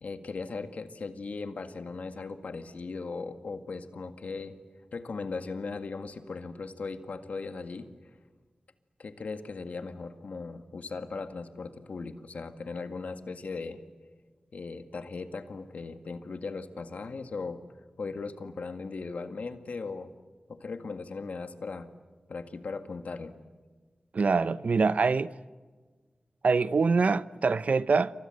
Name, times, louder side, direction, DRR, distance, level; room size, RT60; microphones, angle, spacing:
voice 1, 0.0-4.6 4.9-7.9 9.0-13.8 14.5-17.6 18.0-20.1 20.5-21.9 22.3-23.3, left 4 dB, 85° left, 2.0 m, -38 dB
voice 2, 24.1-25.3 26.4-28.1, right 4 dB, 75° right, 0.8 m, -24 dB
29.0 x 25.0 x 7.9 m
wide cardioid pair, 60°, 2 cm